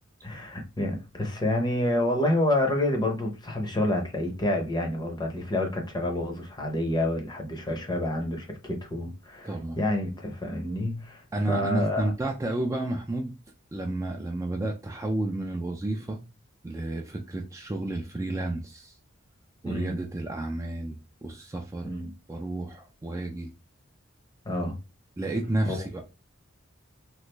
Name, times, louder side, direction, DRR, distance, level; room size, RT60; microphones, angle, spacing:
voice 1, 0.2-12.1 19.7-20.0 21.8-22.1 24.4-24.8 25.7-25.9, left 1 dB, 20° left, 0.6 m, -28 dB
voice 2, 9.4-9.8 11.3-13.3 13.7-16.2 16.6-19.0 19.6-21.9 22.3-23.5 25.2-26.0, right 1 dB, 15° right, 0.3 m, -31 dB
3.0 x 2.4 x 3.2 m
head